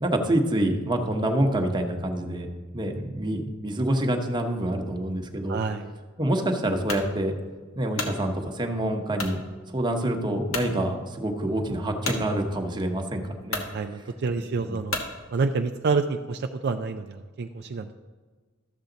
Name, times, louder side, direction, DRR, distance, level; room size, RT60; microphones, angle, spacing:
voice 1, 0.0-5.6 6.2-7.3 7.8-9.4 9.7-13.6 14.7-14.8, right 1 dB, 20° right, 3 dB, 1.0 m, -26 dB
voice 2, 5.5-5.9 13.7-15.0 15.3-17.9, right 4 dB, 55° right, 6 dB, 0.4 m, -28 dB
sound 1, 6.9-7.1 7.7-8.2 9.2-9.4 9.9-10.0 10.5-10.7 12.0-12.2 13.0-13.1 13.5-13.7 14.9-15.1, left 3 dB, 70° left, 1.3 m, -31 dB
13.0 x 7.1 x 3.9 m, 1.4 s
head